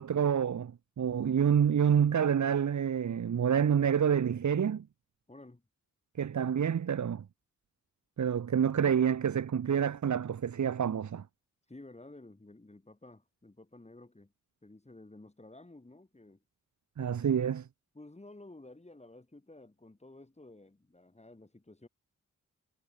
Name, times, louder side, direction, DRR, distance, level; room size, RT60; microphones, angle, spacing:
voice 1, 0.0-4.8 6.2-7.2 8.2-11.2 17.0-17.7, right 8 dB, 65° right, 1.3 m, -28 dB
voice 2, 5.3-5.6 11.7-14.3 14.6-16.4 17.9-21.9, left 2 dB, 20° left, 6.5 m, -53 dB
cardioid pair, 70°, 31 cm